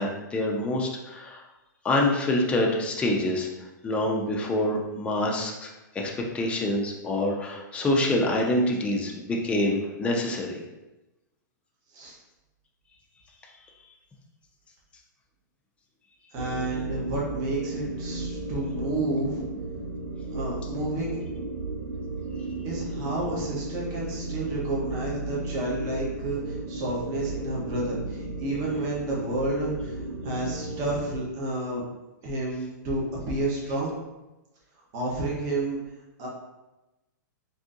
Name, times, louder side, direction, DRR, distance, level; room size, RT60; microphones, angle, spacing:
voice 1, 0.0-1.4 1.8-3.5 3.8-10.6, left 1 dB, 10° left, -1 dB, 0.4 m, -26 dB
voice 2, 16.3-19.4 20.3-21.2 22.6-31.8 32.2-33.9 34.9-35.8 36.2-36.3, right 2 dB, 35° right, -4 dB, 0.9 m, -30 dB
sound 1, 16.4-31.2, right 2 dB, 75° right, 0.6 m, -34 dB
3.5 x 2.6 x 2.6 m, 1.0 s
hypercardioid pair, 140°, 10 cm